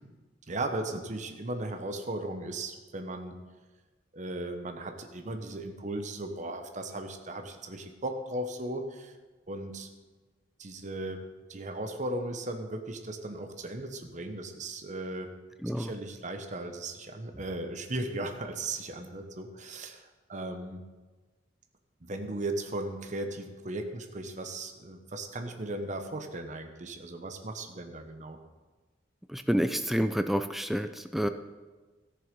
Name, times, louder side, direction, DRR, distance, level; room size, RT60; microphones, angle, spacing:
voice 1, 0.5-3.3 4.1-9.1 9.5-9.9 10.6-11.2 11.5-15.3 15.8-20.8 22.0-28.4, right 2 dB, 45° right, 6 dB, 1.0 m, -37 dB
voice 2, 15.6-15.9 29.3-31.3, equal, ahead, 9 dB, 0.4 m, -28 dB
14.0 x 6.9 x 5.3 m, 1.3 s
head